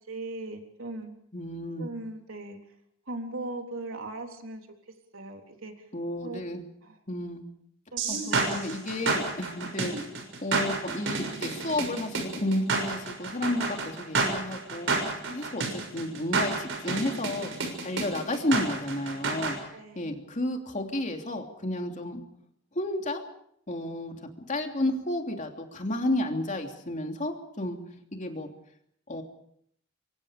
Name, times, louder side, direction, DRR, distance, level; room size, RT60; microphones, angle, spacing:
voice 1, 0.1-1.1 1.8-2.6 3.1-4.6 5.1-5.7 6.2-6.4 6.8-7.0 7.9-8.7 9.8-10.0 19.7-20.1, right 2 dB, 85° right, 3 dB, 3.6 m, -38 dB
voice 2, 1.3-1.9 5.9-6.6 7.1-7.4 8.1-10.1 10.4-14.9 15.2-17.5 17.8-19.6 19.9-22.2 22.7-23.2 23.7-24.2 24.5-27.8 28.1-28.5 29.1-29.2, left 1 dB, 40° left, 3 dB, 3.0 m, -32 dB
sound 1, 8.0-19.5, right 3 dB, 65° right, 6.4 m, -29 dB
26.5 x 24.5 x 5.2 m, 0.69 s
head